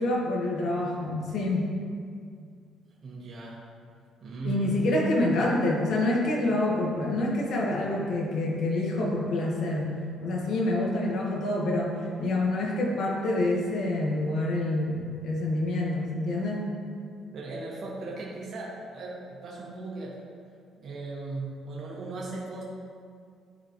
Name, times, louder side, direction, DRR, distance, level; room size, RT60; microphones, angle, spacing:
voice 1, 0.0-1.7 4.4-10.0 10.2-16.7, left 1 dB, 65° left, -2 dB, 1.4 m, -27 dB
voice 2, 3.0-3.7 4.2-4.9 17.3-20.2 20.8-22.6, right 3 dB, 50° right, -4 dB, 1.3 m, -37 dB
11.5 x 4.3 x 3.0 m, 2.2 s
cardioid pair, 140°, 0 cm